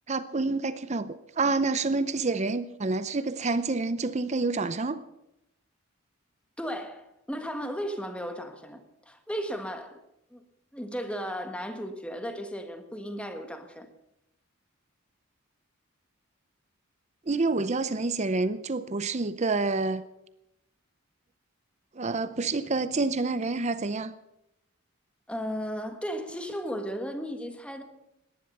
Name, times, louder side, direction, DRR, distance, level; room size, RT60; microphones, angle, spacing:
voice 1, 0.1-5.0 17.3-20.0 21.9-24.1, right 3 dB, 30° right, 0.6 m, -28 dB
voice 2, 6.6-10.0 10.3-10.4 10.7-13.9 25.3-27.8, equal, 5° left, 1.5 m, -35 dB
18.0 x 11.0 x 6.7 m
head